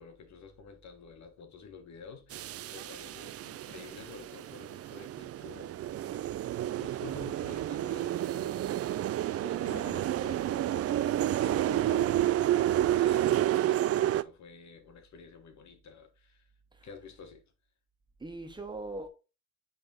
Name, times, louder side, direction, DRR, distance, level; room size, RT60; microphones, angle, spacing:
voice 1, 0.0-6.3 6.8-16.5 16.8-17.4, left 5 dB, 65° left, 1.6 m, -50 dB
sound 1, 2.3-14.2, right 13 dB, 50° right, 0.4 m, -30 dB
voice 2, 18.2-19.1, right 2 dB, 15° right, 1.7 m, -41 dB
8.2 x 3.5 x 5.0 m
cardioid pair, 90°, 30 cm